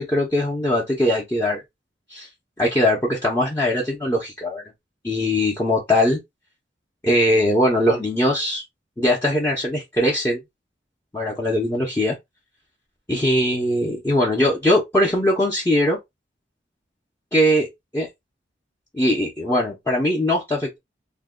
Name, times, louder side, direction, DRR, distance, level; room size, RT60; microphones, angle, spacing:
voice 1, 0.0-1.6 2.1-2.3 2.6-4.6 5.0-6.2 7.0-8.6 9.0-10.4 11.1-12.1 13.1-16.0 17.3-17.7 17.9-18.1 18.9-20.8, left 1 dB, 15° left, 0.6 m, -21 dB
2.6 x 2.2 x 3.6 m
head